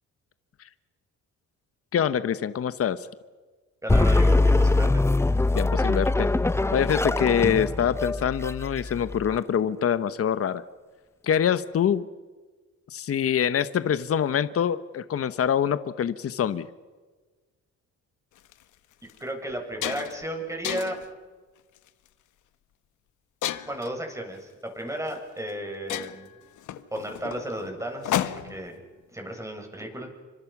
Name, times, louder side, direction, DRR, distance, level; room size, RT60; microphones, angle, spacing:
voice 1, 1.9-3.1 5.6-6.3 6.7-10.6 11.2-12.0 12.9-16.6, left 8 dB, 50° left, 13 dB, 1.1 m, -25 dB
voice 2, 3.8-5.1 19.0-21.0 23.7-26.3 26.9-28.8 29.1-30.1, right 1 dB, 10° right, 2 dB, 7.8 m, -34 dB
sound 1, 3.9-9.4, left 2 dB, 10° left, 0.8 m, -23 dB
sound 2, 18.4-18.5 19.1-19.2 19.5-20.3 20.6-21.1 21.8-22.1 23.4-24.0 25.1-25.2 25.5-25.6 25.9-28.7, left 12 dB, 80° left, 1.5 m, -32 dB
29.5 x 25.5 x 6.1 m, 1.4 s
cardioid pair, 90°, 30 cm